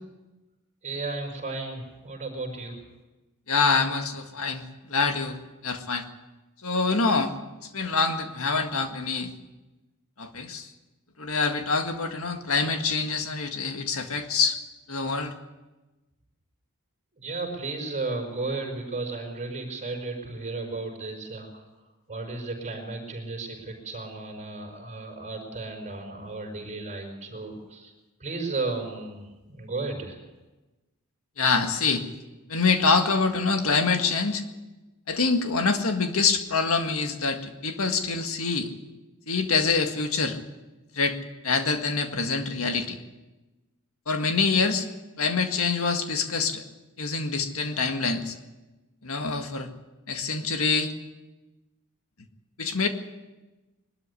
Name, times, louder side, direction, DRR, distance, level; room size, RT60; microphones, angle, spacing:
voice 1, 0.8-2.8 17.1-21.6 22.1-27.9 28.2-29.2 29.5-30.2, right 3 dB, 35° right, 1 dB, 5.2 m, -34 dB
voice 2, 3.5-5.4 5.6-6.1 6.6-7.3 7.6-9.3 10.2-10.7 11.2-14.6 14.9-15.3 31.4-32.0 32.5-34.4 35.1-38.7 39.3-40.4 40.9-41.2 41.4-43.0 44.1-44.9 45.2-46.6 47.0-48.4 49.0-49.7 50.1-50.9 52.6-52.9, left 4 dB, 70° left, 6 dB, 1.9 m, -25 dB
22.0 x 13.0 x 9.8 m, 1.1 s
head